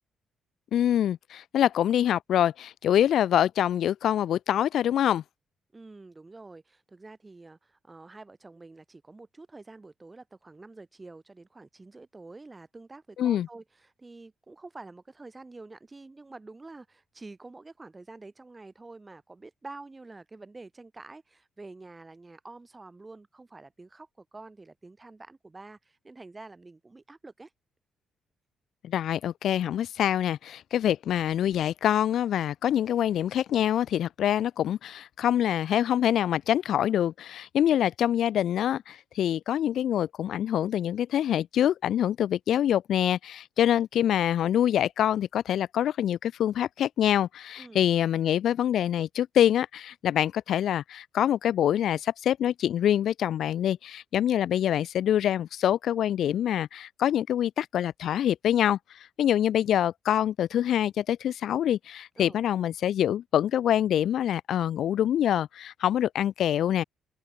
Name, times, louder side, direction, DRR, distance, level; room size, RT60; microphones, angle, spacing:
voice 1, 0.7-5.2 13.2-13.5 28.8-58.8 59.2-66.8, left 10 dB, 70° left, 0.6 m, -25 dB
voice 2, 5.7-27.5 47.6-47.9 62.2-62.4, right 3 dB, 20° right, 1.7 m, -47 dB
open air
cardioid pair, 90°, 0 cm